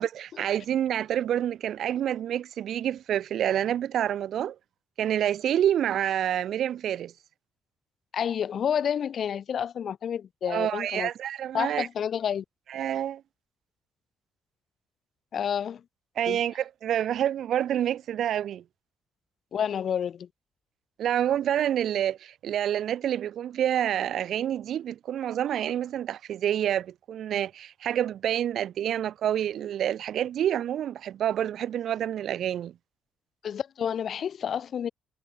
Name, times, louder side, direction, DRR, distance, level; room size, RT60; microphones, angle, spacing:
voice 1, 0.0-4.5 5.0-7.1 10.5-11.9 12.7-13.2 16.2-18.6 21.0-32.7, right 10 dB, 70° right, 5.3 m, -28 dB
voice 2, 8.1-11.1 11.5-12.4 15.3-15.8 16.3-16.4 19.5-20.3 33.4-34.9, left 8 dB, 55° left, 7.2 m, -29 dB
cardioid pair, 135°, 0 cm